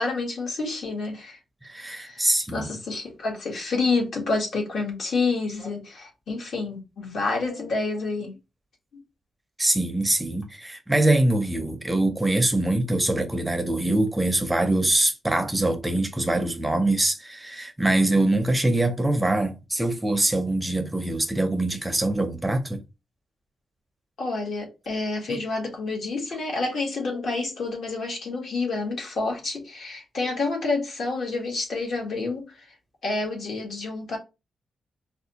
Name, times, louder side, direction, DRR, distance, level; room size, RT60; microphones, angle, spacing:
voice 1, 0.0-1.4 1.9-8.3 24.2-32.7 33.0-34.2, left 3 dB, 60° left, 1.4 m, -28 dB
voice 2, 1.6-2.7 9.6-22.8 25.3-25.4, right 1 dB, 10° right, 0.5 m, -23 dB
4.6 x 2.3 x 2.8 m
wide cardioid pair, 165°, 0 cm